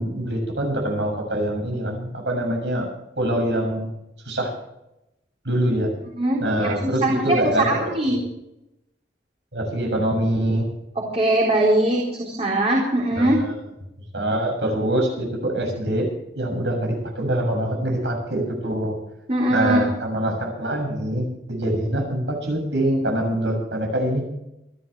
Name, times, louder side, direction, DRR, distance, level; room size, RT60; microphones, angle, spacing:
voice 1, 0.0-2.9 3.2-3.9 4.2-4.5 5.4-5.9 6.4-8.2 9.5-10.7 13.1-13.5 14.1-16.1 16.4-19.0 19.5-24.3, right 1 dB, 80° right, 2 dB, 6.8 m, -24 dB
voice 2, 6.1-8.2 11.0-13.4 19.3-19.8, right 1 dB, 35° right, -3 dB, 3.9 m, -21 dB
26.5 x 11.5 x 3.4 m, 0.86 s
head